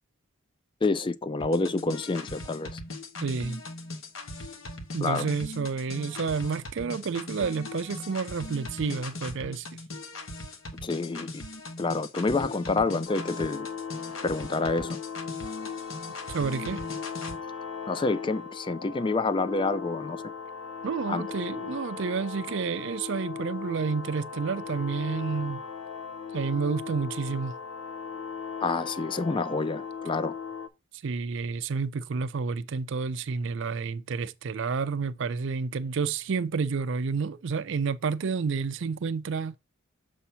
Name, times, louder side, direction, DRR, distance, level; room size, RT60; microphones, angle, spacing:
voice 1, 0.8-2.8 5.0-5.3 10.8-11.4 11.8-13.7 14.2-15.0 17.9-20.2 21.1-21.2 28.6-30.3, left 3 dB, 25° left, 0.3 m, -28 dB
sound 1, 1.4-17.4, left 2 dB, 70° left, 1.1 m, -40 dB
voice 2, 3.2-3.6 4.9-9.7 16.3-16.8 20.8-25.6 26.3-27.6 31.0-39.5, right 5 dB, 60° right, 0.4 m, -30 dB
sound 2, 13.1-30.7, left 6 dB, 85° left, 0.7 m, -38 dB
6.9 x 2.8 x 5.6 m
head